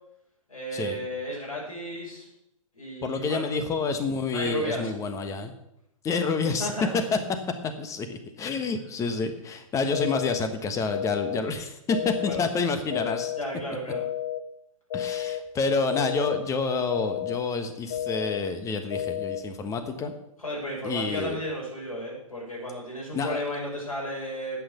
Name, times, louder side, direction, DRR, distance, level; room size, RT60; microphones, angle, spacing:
voice 1, 0.5-2.3 2.7-3.5 4.3-4.9 6.6-6.9 12.2-12.4 13.4-14.0 20.4-24.6, equal, 80° left, -4 dB, 6.0 m, -33 dB
voice 2, 3.0-5.5 6.0-6.7 7.1-7.2 7.6-13.3 14.9-20.1 20.8-21.4 23.1-23.4, left 4 dB, 15° left, 8 dB, 1.4 m, -28 dB
sound 1, 9.9-10.4 10.9-11.4 11.9-12.4 12.9-13.4 13.9-14.4 14.9-15.4 15.9-16.4 16.9-17.4 17.9-18.4 18.9-19.4, left 11 dB, 50° left, 0.9 m, -31 dB
11.0 x 8.6 x 6.8 m, 0.81 s
figure-of-eight pair, 115°, 18 cm